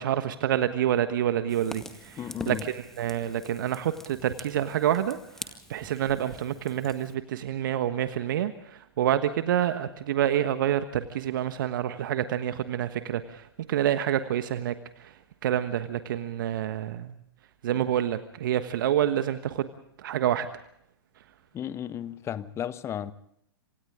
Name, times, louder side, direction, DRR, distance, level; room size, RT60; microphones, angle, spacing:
voice 1, 0.0-17.1 17.6-19.7 20.0-20.5 21.2-21.3, right 11 dB, 55° right, 10 dB, 1.3 m, -28 dB
Fire, 1.5-7.2, left 1 dB, 5° left, 2.0 m, -45 dB
voice 2, 2.2-2.6 21.5-23.1, left 10 dB, 20° left, 15 dB, 1.2 m, -34 dB
27.0 x 26.5 x 3.7 m, 0.72 s
figure-of-eight pair, 110°, 13 cm